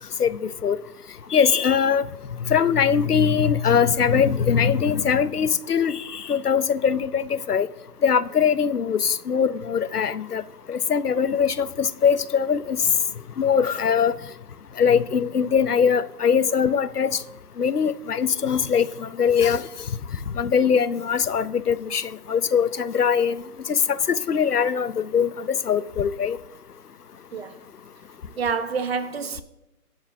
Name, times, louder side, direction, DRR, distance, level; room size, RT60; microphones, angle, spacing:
voice 1, 0.2-0.8 1.3-2.1 2.4-7.7 8.0-10.4 10.7-12.8 13.4-14.1 14.8-17.1 17.6-19.6 20.4-23.4 23.7-26.4, left 7 dB, 90° left, 0.7 m, -21 dB
voice 2, 28.4-29.4, right 5 dB, 45° right, 0.9 m, -27 dB
23.0 x 7.7 x 2.7 m
figure-of-eight pair, 145°, 45 cm